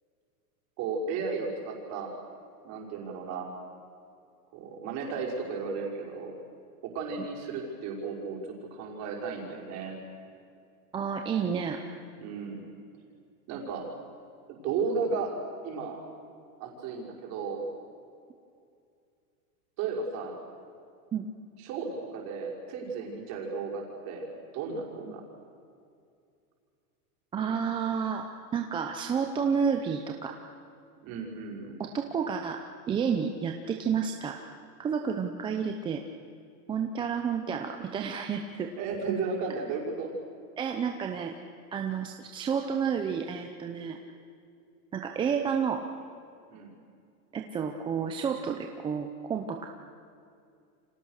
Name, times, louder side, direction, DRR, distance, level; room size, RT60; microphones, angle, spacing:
voice 1, 0.8-2.1 2.6-3.5 4.5-6.3 6.8-10.0 12.2-12.6 13.5-13.9 14.6-15.3 15.6-16.0 16.6-17.7 19.8-20.4 21.6-25.2 31.0-31.8 38.8-40.1 46.5-46.7, right 4 dB, 35° right, -1 dB, 5.6 m, -34 dB
voice 2, 10.9-11.8 21.1-21.3 25.1-25.2 27.3-28.3 28.5-30.4 31.8-34.4 34.8-36.0 36.7-38.7 40.6-41.3 41.7-44.0 44.9-45.8 47.3-49.7, right 6 dB, 10° right, 4 dB, 0.7 m, -30 dB
29.5 x 26.0 x 6.6 m, 2.4 s
supercardioid pair, 160°, 46 cm